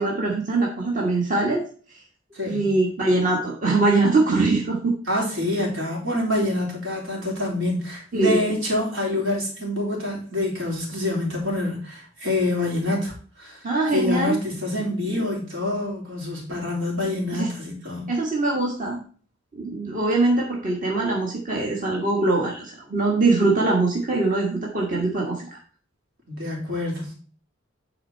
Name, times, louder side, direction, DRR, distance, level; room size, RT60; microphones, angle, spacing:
voice 1, 0.0-2.0 2.5-4.9 8.1-8.5 13.6-14.4 17.3-17.5 18.1-19.0 19.5-25.6, right 2 dB, 40° right, -2 dB, 1.5 m, -22 dB
voice 2, 2.3-2.7 5.1-13.6 13.9-18.1 26.3-27.1, left 1 dB, 75° right, -2 dB, 3.7 m, -26 dB
10.0 x 4.4 x 4.5 m, 0.42 s
head